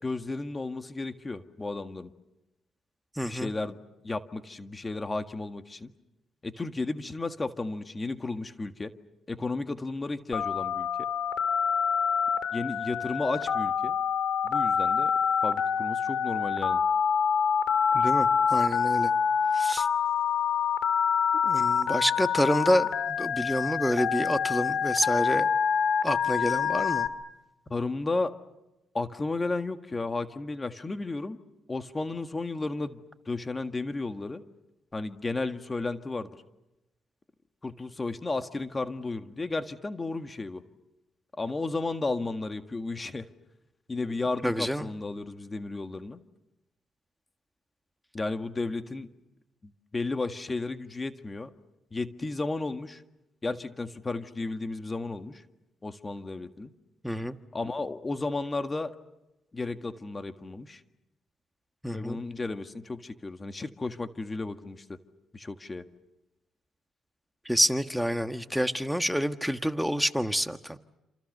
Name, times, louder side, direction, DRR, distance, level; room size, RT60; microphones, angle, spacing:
voice 1, 0.0-2.1 3.2-3.8 4.0-5.9 6.4-8.9 9.3-10.9 12.5-13.9 14.4-15.1 15.4-16.8 27.7-28.3 28.9-31.4 31.7-33.0 33.2-34.4 34.9-36.3 37.6-40.6 41.4-43.3 43.9-46.2 48.1-49.1 49.9-51.5 51.9-53.0 53.4-55.4 55.8-56.7 57.5-58.9 59.5-60.8 61.9-65.0 65.3-65.8, left 3 dB, 25° left, 8 dB, 1.8 m, -33 dB
voice 2, 3.2-3.5 17.9-19.1 19.5-19.9 21.4-25.5 26.0-27.1 44.4-44.9 57.0-57.4 61.8-62.2 67.4-70.8, equal, ahead, 8 dB, 1.5 m, -28 dB
Telephone, 10.3-27.1, left 7 dB, 70° left, 2.7 m, -26 dB
28.5 x 27.5 x 6.7 m, 0.94 s
cardioid pair, 90°, 0 cm